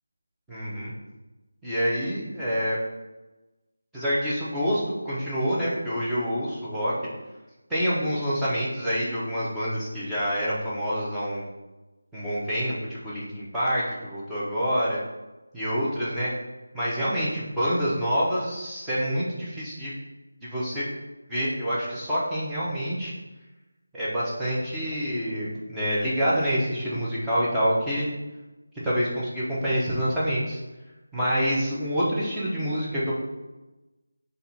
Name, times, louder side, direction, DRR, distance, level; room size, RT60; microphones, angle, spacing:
voice 1, 0.5-0.9 1.6-2.8 3.9-6.9 7.7-11.5 12.1-15.0 15.5-16.3 16.7-19.9 20.4-20.9 21.3-23.1 23.9-28.1 28.8-30.6 31.1-33.1, equal, 5° right, -11 dB, 0.9 m, -27 dB
4.1 x 2.5 x 4.1 m, 1.1 s
figure-of-eight pair, 165°, 0 cm